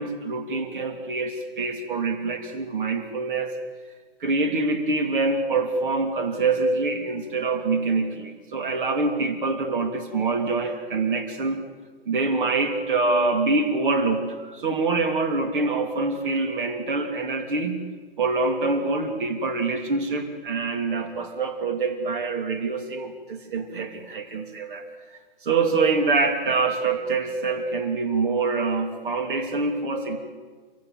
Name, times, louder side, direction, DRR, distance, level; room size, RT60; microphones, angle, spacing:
voice 1, 0.0-3.6 4.2-11.6 12.1-17.8 18.2-24.8 25.4-30.2, right 3 dB, 55° right, 5 dB, 2.9 m, -25 dB
27.5 x 24.0 x 7.5 m, 1.5 s
hypercardioid pair, 170°, 30 cm